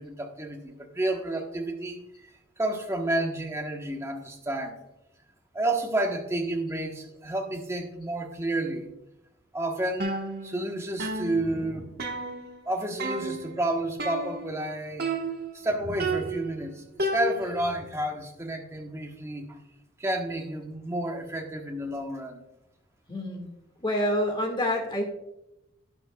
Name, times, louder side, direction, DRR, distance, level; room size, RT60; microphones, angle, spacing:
voice 1, 0.0-2.3 2.6-4.8 5.5-8.9 9.5-10.2 10.4-12.1 12.7-15.1 15.5-19.6 20.0-22.4, right 1 dB, 15° right, 2 dB, 1.1 m, -30 dB
sound 1, 10.0-10.7 11.0-12.7 13.0-13.6 14.0-14.7 15.0-15.6 16.0-17.7, right 2 dB, 50° right, 1.3 m, -32 dB
voice 2, 23.1-23.5 23.8-25.0, left 1 dB, 25° left, 2 dB, 1.9 m, -27 dB
11.5 x 10.5 x 2.3 m, 0.89 s
head